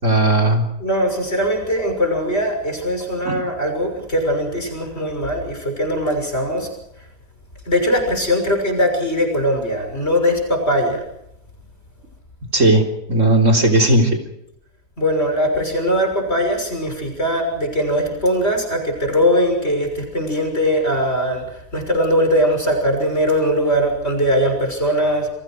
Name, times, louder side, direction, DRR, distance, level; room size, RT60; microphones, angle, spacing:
voice 1, 0.0-0.7 3.3-3.4 12.5-12.8 13.1-14.2, right 1 dB, 50° right, 6 dB, 4.1 m, -15 dB
voice 2, 0.8-6.7 7.7-11.0 15.0-25.3, equal, 40° left, 4 dB, 6.7 m, -20 dB
29.0 x 24.0 x 4.8 m, 0.81 s
omnidirectional pair, 1.7 m